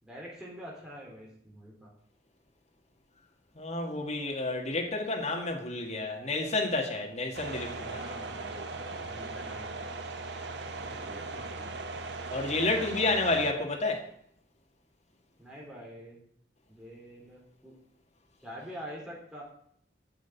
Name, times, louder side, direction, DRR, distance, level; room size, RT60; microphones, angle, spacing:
voice 1, 0.0-1.9 7.9-9.9 10.9-11.8 15.4-16.2 16.7-17.7 18.4-19.4, equal, 5° right, 3.2 m, -46 dB
voice 2, 3.6-8.0 12.3-14.1, left 2 dB, 40° left, 2.0 m, -30 dB
sound 1, 7.3-13.5, right 3 dB, 80° right, 1.2 m, -38 dB
9.6 x 6.5 x 8.3 m
head